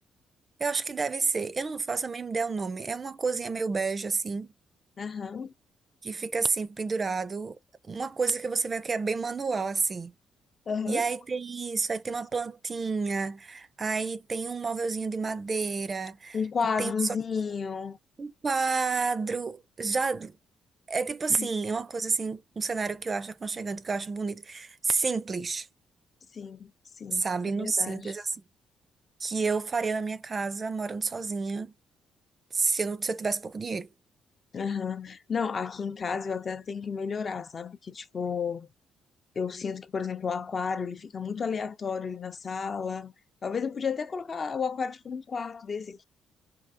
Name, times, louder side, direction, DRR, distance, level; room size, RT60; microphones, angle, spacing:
voice 1, 0.6-4.5 6.0-7.6 7.9-10.1 10.9-16.4 16.8-17.1 18.2-20.4 20.9-25.7 27.1-28.4 29.2-31.7 32.5-33.9, right 4 dB, 35° right, 0.4 m, -30 dB
voice 2, 5.0-5.5 10.7-11.0 16.3-18.0 21.4-21.5 26.3-26.7 27.0-27.3 27.6-28.2 34.5-38.7 39.4-43.1 43.4-46.0, left 6 dB, 45° left, 0.6 m, -32 dB
4.4 x 2.7 x 2.5 m
cardioid pair, 90°, 0 cm